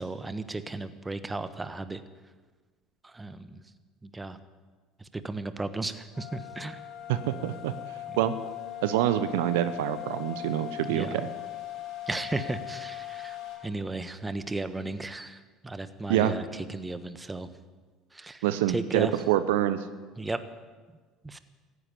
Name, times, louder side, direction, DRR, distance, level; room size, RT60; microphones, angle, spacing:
voice 1, 0.0-2.0 3.0-3.6 4.0-4.4 5.0-6.8 10.8-11.2 12.1-13.4 13.6-17.5 18.1-19.1 20.2-20.4 21.2-21.4, right 2 dB, 15° right, 12 dB, 1.2 m, -35 dB
sound 1, 6.1-13.6, left 13 dB, 60° left, 5.0 m, -39 dB
voice 2, 7.1-7.7 8.2-8.4 8.8-11.3 16.1-16.3 18.4-19.8, right 12 dB, 75° right, 12 dB, 0.8 m, -26 dB
14.5 x 10.0 x 10.0 m, 1.4 s
hypercardioid pair, 70°, 0 cm